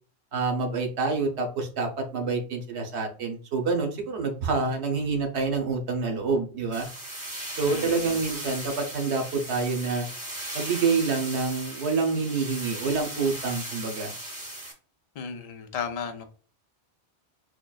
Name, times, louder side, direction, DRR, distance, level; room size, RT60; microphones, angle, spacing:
voice 1, 0.3-6.9 7.6-10.1 10.5-14.1, right 4 dB, 75° right, 1.1 m, -27 dB
sound 1, 6.7-14.7, right 1 dB, 35° right, 1.9 m, -37 dB
voice 2, 7.7-8.1 15.2-16.2, left 6 dB, 50° left, 0.5 m, -34 dB
6.2 x 2.2 x 2.3 m
omnidirectional pair, 1.1 m